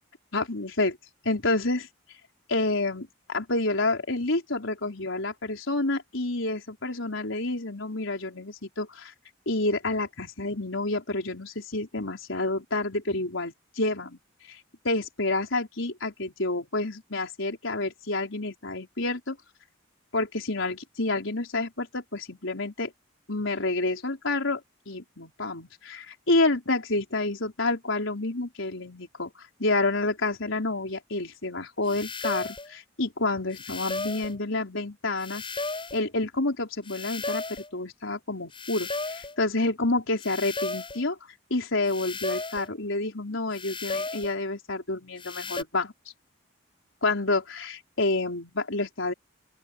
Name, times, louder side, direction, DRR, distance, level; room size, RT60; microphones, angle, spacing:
voice 1, 0.3-1.0 1.2-1.9 2.5-9.1 9.5-14.2 14.5-14.6 14.8-19.4 20.1-22.9 23.3-24.6 24.9-35.4 35.9-41.2 41.5-45.9 47.0-49.1, left 2 dB, 75° left, 4.5 m, -29 dB
sound 1, 31.9-32.7 33.5-34.4 35.2-36.0 36.9-37.7 38.5-39.4 40.2-41.0 41.9-42.7 43.5-44.4 45.2-45.6, left 3 dB, 25° left, 6.5 m, -34 dB
open air
head